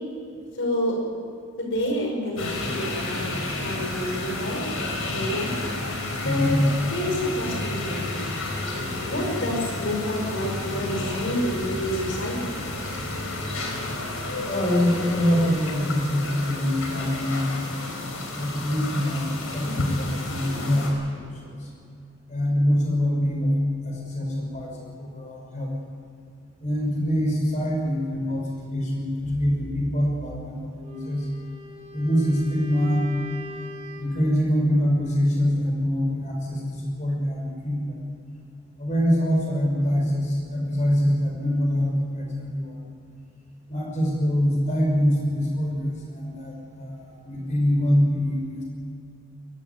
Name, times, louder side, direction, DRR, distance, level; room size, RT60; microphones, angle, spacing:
voice 1, 0.6-1.0 1.6-3.3 3.6-4.6 5.1-5.5 6.2-8.2 9.1-12.6, left 1 dB, 65° left, 0 dB, 5.7 m, -28 dB
sound 1, 2.4-20.9, left 2 dB, 85° left, 4.7 m, -31 dB
voice 2, 6.2-6.5 14.5-17.5 18.4-21.2 22.3-23.5 23.8-25.7 26.6-31.3 31.9-33.1 34.0-38.0 38.8-42.7 43.7-48.6, equal, 35° left, 0 dB, 5.7 m, -24 dB
Wind instrument woodwind instrument, 30.8-34.3, left 1 dB, 30° right, 3.0 m, -41 dB
22.5 x 14.0 x 9.5 m, 2.5 s
head